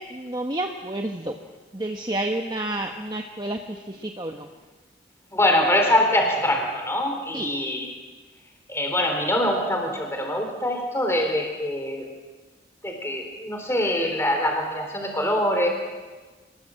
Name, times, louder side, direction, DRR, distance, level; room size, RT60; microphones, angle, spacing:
voice 1, 0.0-1.3 1.7-4.5 7.3-7.5, right 1 dB, 25° right, 3 dB, 1.1 m, -30 dB
voice 2, 5.3-7.9 8.7-12.1 12.8-15.7, left 1 dB, 15° left, 3 dB, 3.5 m, -24 dB
26.5 x 19.5 x 7.7 m, 1.3 s
head